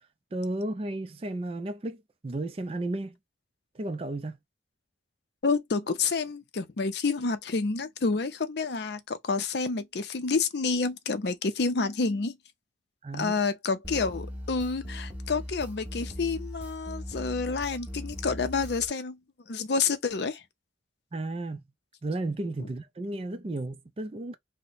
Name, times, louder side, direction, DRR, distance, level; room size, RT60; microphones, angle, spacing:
voice 1, 0.3-3.2 3.7-4.4 13.0-13.3 21.1-21.6 22.0-24.4, right 2 dB, 30° right, 0.4 m, -33 dB
voice 2, 5.4-12.4 13.1-19.2 19.5-20.4, left 4 dB, 60° left, 0.5 m, -29 dB
sound 1, 13.8-18.9, left 1 dB, 10° right, 0.7 m, -39 dB
2.9 x 2.1 x 3.9 m
head